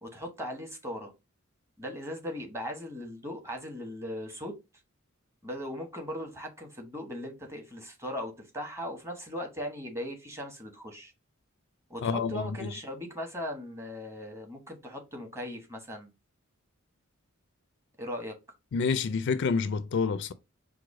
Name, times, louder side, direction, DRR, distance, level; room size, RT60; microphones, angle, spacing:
voice 1, 0.0-1.1 1.8-4.5 5.4-11.1 11.9-16.1 18.0-18.3, equal, 15° right, 1.1 m, -38 dB
voice 2, 12.0-12.7 18.7-20.3, left 5 dB, 60° left, 0.4 m, -28 dB
4.7 x 2.1 x 4.7 m
head